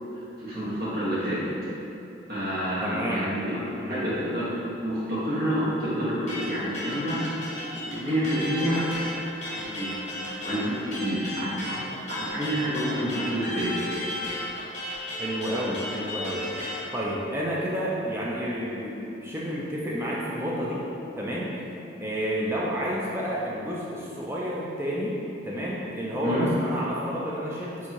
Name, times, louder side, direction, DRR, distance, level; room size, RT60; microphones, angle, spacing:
voice 1, 0.4-1.4 2.3-3.6 3.9-4.5 4.8-7.2 7.7-8.9 9.4-9.9 10.4-11.8 12.1-13.8 26.2-26.5, equal, 50° right, -9 dB, 1.2 m, -28 dB
voice 2, 2.8-3.3 3.8-4.1 15.2-16.5 16.9-20.9 21.2-21.6 22.0-25.2 25.4-27.9, equal, 15° right, -5 dB, 0.3 m, -30 dB
sound 1, 6.3-16.8, left 1 dB, 35° left, 1.0 m, -34 dB
4.3 x 3.5 x 2.9 m, 3.0 s
head